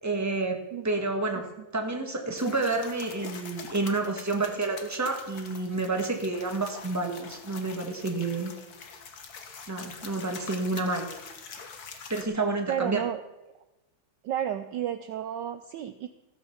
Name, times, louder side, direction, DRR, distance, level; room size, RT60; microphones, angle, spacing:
voice 1, 0.0-8.5 9.7-11.1 12.1-13.0, right 3 dB, 10° right, 3 dB, 1.5 m, -29 dB
sound 1, 2.4-12.2, left 5 dB, 50° left, 1.6 m, -45 dB
voice 2, 12.7-13.2 14.2-16.1, right 10 dB, 70° right, 10 dB, 1.1 m, -31 dB
15.5 x 6.8 x 7.2 m, 1.0 s
omnidirectional pair, 2.3 m